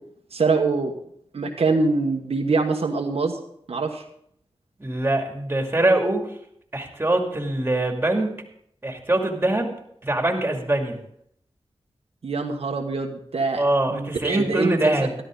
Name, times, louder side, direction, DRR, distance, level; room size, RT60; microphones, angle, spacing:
voice 1, 0.3-0.9 1.3-3.4 3.7-4.0 12.2-13.6 13.9-14.9, right 3 dB, 75° right, 2 dB, 1.3 m, -24 dB
voice 2, 4.8-6.3 6.7-8.3 8.8-9.7 10.0-11.0 13.6-15.1, right 1 dB, 20° right, 2 dB, 2.6 m, -23 dB
12.5 x 12.5 x 3.9 m, 0.69 s
wide cardioid pair, 70°, 10 cm